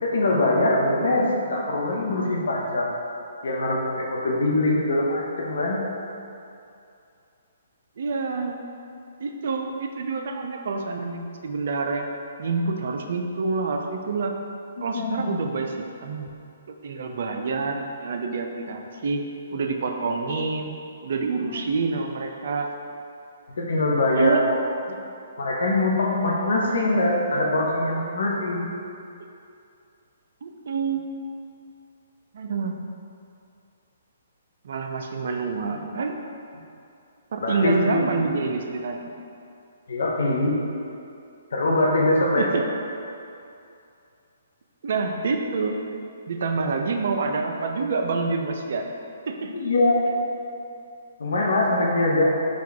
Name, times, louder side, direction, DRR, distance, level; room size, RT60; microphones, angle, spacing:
voice 1, 0.0-2.9 3.4-5.8 14.9-15.5 21.4-21.6 23.6-24.6 24.9-25.0 25.4-28.7 37.4-38.0 39.9-40.6 41.5-42.5 49.5-50.0 51.2-52.3, left 2 dB, 65° left, -1 dB, 0.7 m, -23 dB
voice 2, 8.0-8.6 9.2-12.1 12.4-14.3 14.8-16.3 16.7-19.2 19.5-20.7 21.0-22.7 24.1-24.4 30.4-31.0 32.3-32.8 34.6-36.1 37.3-39.0 42.4-42.6 44.8-45.8 46.3-48.9 49.3-49.5, right 4 dB, 60° right, 3 dB, 0.3 m, -27 dB
4.6 x 2.3 x 3.5 m, 2.6 s
figure-of-eight pair, 130°, 0 cm